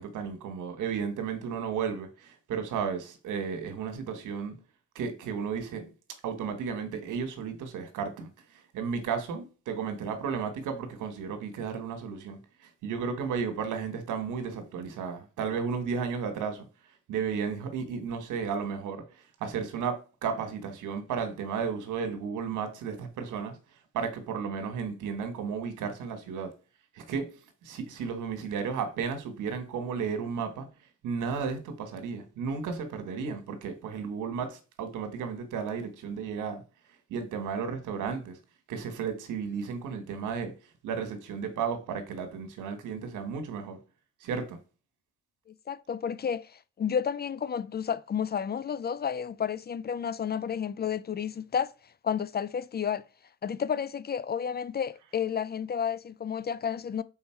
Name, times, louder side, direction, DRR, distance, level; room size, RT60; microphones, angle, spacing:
voice 1, 0.0-4.5 4.9-5.8 6.2-8.3 8.7-12.4 12.8-16.7 17.1-19.0 19.4-23.6 23.9-26.5 27.0-27.3 27.6-30.7 31.0-36.6 37.1-38.4 38.7-40.5 40.8-43.8 44.2-44.6, right 6 dB, 85° right, 1.5 m, -33 dB
voice 2, 45.5-51.7 52.0-53.0 53.4-57.0, left 7 dB, 35° left, 0.4 m, -31 dB
5.5 x 4.2 x 4.5 m
cardioid pair, 90°, 30 cm